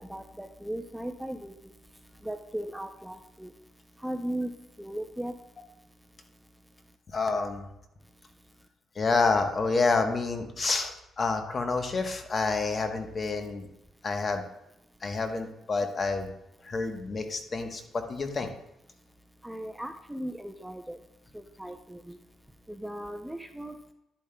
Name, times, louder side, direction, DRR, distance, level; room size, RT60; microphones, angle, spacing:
voice 1, 0.0-1.7 2.2-3.5 4.0-4.5 4.8-5.3 19.4-21.0 21.3-22.2 22.7-23.9, right 1 dB, 5° right, 6 dB, 0.5 m, -37 dB
voice 2, 7.1-7.7 9.0-13.7 14.0-14.4 15.0-16.3 16.6-18.5, left 4 dB, 40° left, 6 dB, 1.0 m, -28 dB
10.5 x 8.7 x 2.2 m, 0.83 s
cardioid pair, 90°, 0 cm